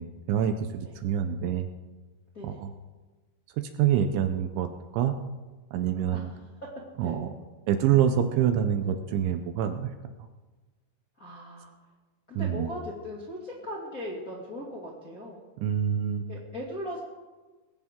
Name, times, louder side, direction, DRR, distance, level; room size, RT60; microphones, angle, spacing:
voice 1, 0.0-1.7 2.4-2.7 3.6-4.7 4.9-5.1 5.7-6.3 7.0-7.3 7.7-9.9 12.4-12.7 15.6-16.2, right 9 dB, 80° right, 7 dB, 2.9 m, -26 dB
voice 2, 11.2-11.7 12.3-15.4 16.3-17.0, equal, 35° left, -4 dB, 1.3 m, -38 dB
20.5 x 16.5 x 3.7 m, 1.3 s
omnidirectional pair, 5.9 m